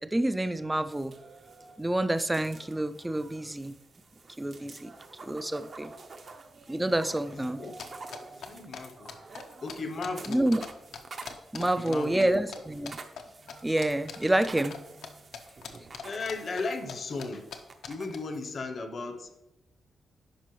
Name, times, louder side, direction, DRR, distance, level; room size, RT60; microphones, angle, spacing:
voice 1, 0.1-1.1 1.8-3.7 4.4-4.9 5.2-5.9 6.7-7.6 10.3-10.6 11.5-13.0 13.6-14.8, right 1 dB, 10° right, 12 dB, 0.3 m, -28 dB
sound 1, 0.9-18.6, right 3 dB, 45° right, 0.6 m, -49 dB
voice 2, 7.3-7.7 8.3-9.2 9.6-10.5 11.6-12.4 16.0-19.4, left 3 dB, 45° left, 7 dB, 0.7 m, -36 dB
sound 2, 7.8-10.7 10.9-12.6 12.8-13.2 13.5-15.1 15.3-16.9 17.2-17.3 17.5-17.6 17.8-18.2, left 7 dB, 85° left, 0.7 m, -41 dB
10.5 x 5.2 x 3.1 m, 0.96 s
wide cardioid pair, 135°, 0 cm